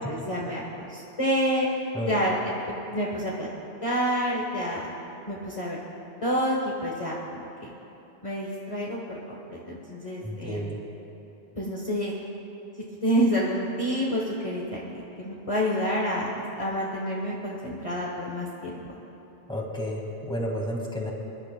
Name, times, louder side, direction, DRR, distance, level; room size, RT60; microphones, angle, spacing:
voice 1, 0.1-1.7 2.1-2.6 2.9-3.5 3.8-4.9 5.3-5.8 6.2-7.7 8.2-9.2 9.5-10.6 11.6-12.1 13.0-19.0, equal, 35° left, -4 dB, 1.2 m, -28 dB
voice 2, 10.2-10.8 19.5-21.1, equal, 5° left, -1 dB, 1.8 m, -31 dB
27.5 x 11.0 x 2.2 m, 3.0 s
omnidirectional pair, 1.0 m